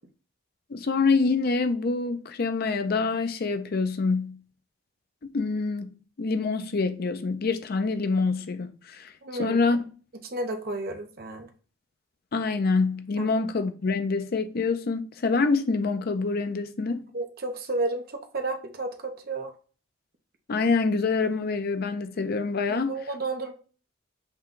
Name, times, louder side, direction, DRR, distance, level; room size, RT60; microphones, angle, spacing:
voice 1, 0.7-4.4 5.3-9.1 9.4-9.9 12.3-17.0 20.5-22.9, left 4 dB, 50° left, 0.5 m, -26 dB
voice 2, 9.2-9.6 10.2-11.5 13.2-13.3 17.1-19.5 22.7-23.5, right 2 dB, 50° right, 0.7 m, -32 dB
5.8 x 2.2 x 3.7 m
head